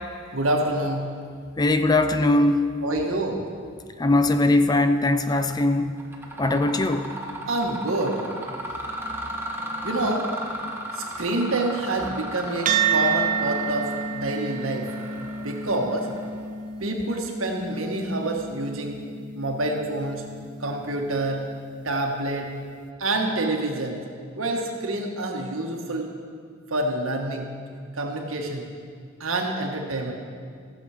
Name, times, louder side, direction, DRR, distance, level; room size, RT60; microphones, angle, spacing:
voice 1, 0.3-1.0 2.8-3.4 7.5-8.2 9.8-10.3 10.9-14.9 15.4-16.1 16.8-19.0 19.3-20.2 20.6-21.4 21.8-22.5 23.0-24.0 24.3-26.1 26.7-27.5 27.9-28.7 29.2-30.1, right 2 dB, 90° right, 1 dB, 1.5 m, -27 dB
voice 2, 1.6-2.7 4.0-5.9 6.4-7.1, left 2 dB, 20° left, 8 dB, 0.4 m, -20 dB
Mechanisms, 5.3-5.6 6.0-16.5, right 1 dB, 10° right, 1.0 m, -36 dB
sound 1, 12.7-21.3, right 6 dB, 40° right, 0.6 m, -30 dB
15.5 x 7.3 x 4.9 m, 2.1 s
head